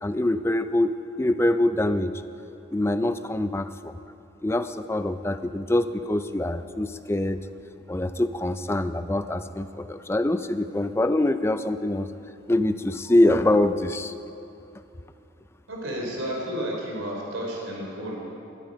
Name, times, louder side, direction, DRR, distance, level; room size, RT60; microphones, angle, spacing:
voice 1, 0.0-2.1 2.7-4.0 4.4-7.4 7.9-12.1 12.5-14.1, left 1 dB, 10° left, 10 dB, 0.4 m, -24 dB
voice 2, 15.7-18.2, equal, 85° right, -2 dB, 3.8 m, -31 dB
19.5 x 12.5 x 5.2 m, 2.8 s
head